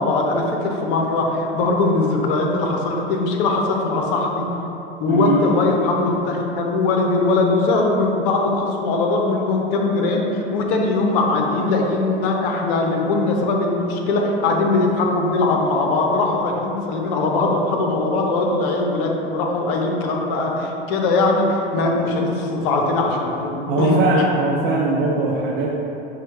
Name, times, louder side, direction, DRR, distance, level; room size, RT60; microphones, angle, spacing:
voice 1, 0.0-4.4 5.0-24.2, left 3 dB, 60° left, 1 dB, 0.7 m, -20 dB
voice 2, 5.1-5.4 23.7-25.7, right 3 dB, 40° right, -3 dB, 0.4 m, -20 dB
5.5 x 2.1 x 3.2 m, 3.0 s
hypercardioid pair, 85°, 29 cm